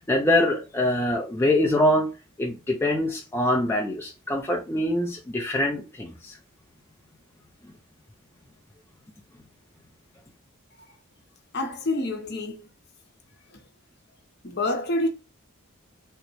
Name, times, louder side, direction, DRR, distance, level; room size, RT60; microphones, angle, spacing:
voice 1, 0.1-2.1 2.4-6.4, left 1 dB, 10° left, 0.3 m, -24 dB
voice 2, 11.5-12.6 14.4-15.1, left 2 dB, 50° left, 0.7 m, -27 dB
3.7 x 2.1 x 3.0 m
head